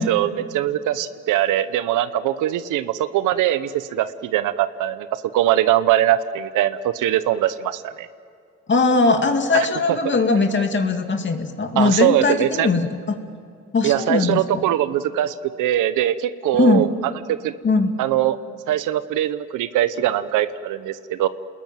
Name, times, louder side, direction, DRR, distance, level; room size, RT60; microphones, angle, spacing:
voice 1, 0.0-8.1 10.0-10.1 11.8-12.7 13.8-16.9 17.3-17.5 18.0-18.4 18.7-21.3, right 12 dB, 90° right, 13 dB, 1.0 m, -21 dB
voice 2, 8.7-13.2 13.7-14.4 16.5-16.8 17.6-17.9, left 3 dB, 40° left, 5 dB, 2.4 m, -20 dB
28.0 x 20.5 x 9.2 m, 2.3 s
cardioid pair, 90°, 30 cm